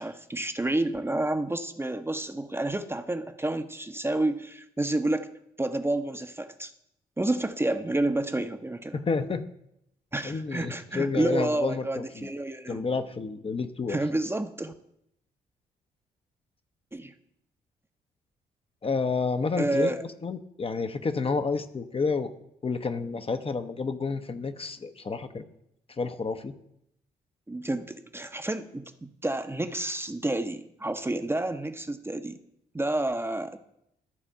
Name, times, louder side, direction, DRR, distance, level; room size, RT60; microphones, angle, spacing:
voice 1, 0.0-5.3 5.6-6.7 7.2-9.0 10.1-12.8 13.9-14.7 16.9-17.1 19.6-20.0 27.5-32.4 32.7-33.6, right 2 dB, 15° right, 8 dB, 0.8 m, -29 dB
voice 2, 8.9-9.4 10.2-12.3 12.7-14.0 18.8-19.9 20.2-22.3 22.6-25.4 26.0-26.5, left 4 dB, 30° left, 9 dB, 0.8 m, -30 dB
13.0 x 4.3 x 5.6 m, 0.78 s
hypercardioid pair, 40°, 19 cm